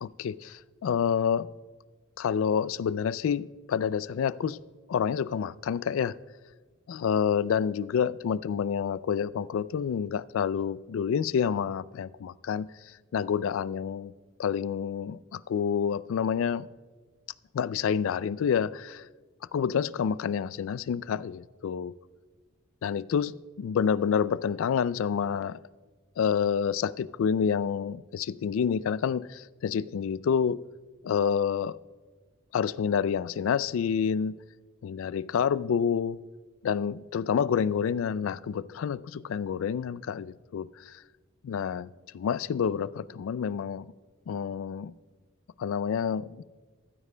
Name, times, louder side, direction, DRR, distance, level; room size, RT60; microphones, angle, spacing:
voice 1, 0.0-1.5 2.2-4.6 4.9-6.2 6.9-14.1 14.4-16.7 17.5-19.1 19.5-22.0 22.8-25.6 26.2-30.6 31.0-31.8 32.5-34.4 34.8-36.2 36.6-41.0 41.4-43.9 44.3-44.9 45.6-46.4, left 7 dB, 65° left, 0.3 m, -28 dB
14.5 x 13.0 x 2.2 m
head